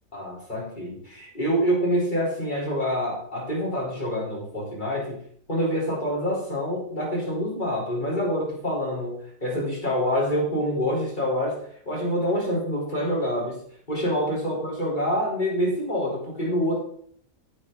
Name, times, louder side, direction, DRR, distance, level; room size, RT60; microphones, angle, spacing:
voice 1, 0.1-5.2 5.5-11.6 11.9-13.6 13.9-16.8, equal, 30° left, -5 dB, 4.0 m, -26 dB
9.5 x 8.5 x 3.8 m, 0.62 s
omnidirectional pair, 1.5 m